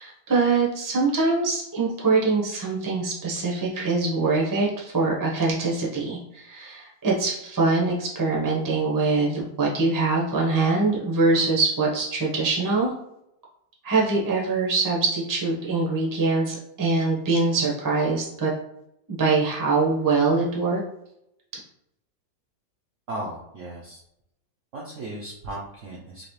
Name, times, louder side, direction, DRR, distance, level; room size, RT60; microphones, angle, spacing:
voice 1, 0.0-12.9 13.8-18.5 19.2-20.8, right 3 dB, 20° right, -3 dB, 0.6 m, -23 dB
voice 2, 23.1-24.0 24.7-26.3, right 1 dB, 65° right, -3 dB, 0.8 m, -36 dB
3.9 x 2.9 x 3.2 m, 0.81 s
omnidirectional pair, 2.0 m